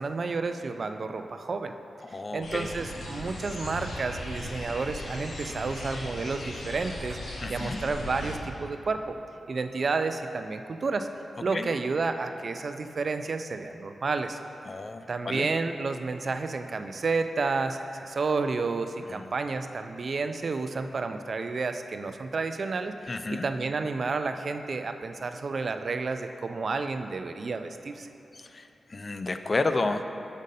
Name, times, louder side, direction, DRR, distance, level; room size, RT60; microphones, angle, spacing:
voice 1, 0.0-1.7 2.3-7.2 7.5-9.1 9.5-11.1 11.4-14.4 15.1-28.1, right 4 dB, 50° right, 8 dB, 0.3 m, -31 dB
voice 2, 2.0-2.7 7.4-7.8 11.5-11.7 14.6-15.5 19.1-19.3 23.1-23.5 28.3-30.1, left 3 dB, 35° left, 8 dB, 0.3 m, -31 dB
sound 1, 2.4-8.4, left 1 dB, 85° left, 0.9 m, -38 dB
6.3 x 5.3 x 4.0 m, 2.9 s
wide cardioid pair, 105°, 0 cm